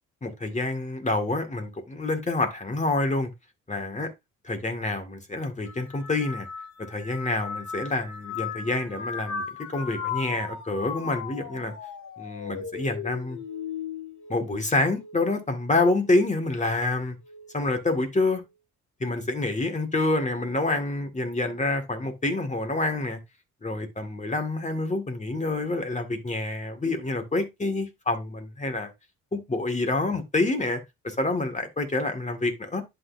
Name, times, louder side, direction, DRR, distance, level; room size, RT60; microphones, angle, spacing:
voice 1, 0.2-3.3 3.7-4.1 4.4-6.5 6.9-9.4 9.7-11.7 12.2-13.4 14.3-17.2 17.5-18.4 19.0-23.2 23.6-28.9 29.3-30.8 31.0-32.8, left 2 dB, 25° left, 1.9 m, -27 dB
sound 1, 5.6-15.2 15.7-16.3 17.2-17.6, left 6 dB, 70° left, 1.8 m, -37 dB
11.0 x 4.2 x 2.6 m
cardioid pair, 90°, 30 cm